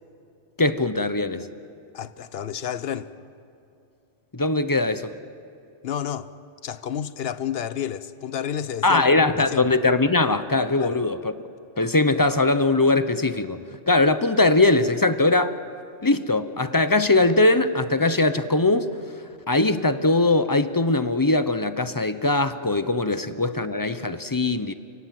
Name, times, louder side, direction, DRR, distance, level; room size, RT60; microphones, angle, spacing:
voice 1, 0.6-1.5 4.3-5.1 8.8-11.3 11.8-13.6 13.9-15.6 16.0-18.9 19.5-24.7, left 2 dB, 20° left, 0.7 m, -21 dB
voice 2, 1.9-3.1 5.8-6.3 6.6-9.7 10.8-11.0, left 9 dB, 60° left, 1.0 m, -30 dB
29.5 x 18.5 x 7.6 m
omnidirectional pair, 1.2 m